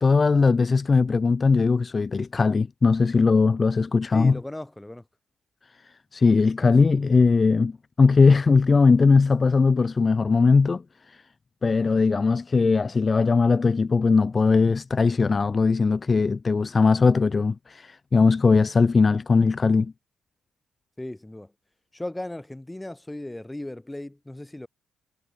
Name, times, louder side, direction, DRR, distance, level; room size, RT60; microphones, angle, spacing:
voice 1, 0.0-4.4 5.8-11.2 11.6-19.9, left 4 dB, 35° left, 0.6 m, -20 dB
voice 2, 4.1-5.1 6.6-6.7 21.0-21.5 21.9-24.7, left 1 dB, 10° left, 5.0 m, -36 dB
figure-of-eight pair, 40°, 0 cm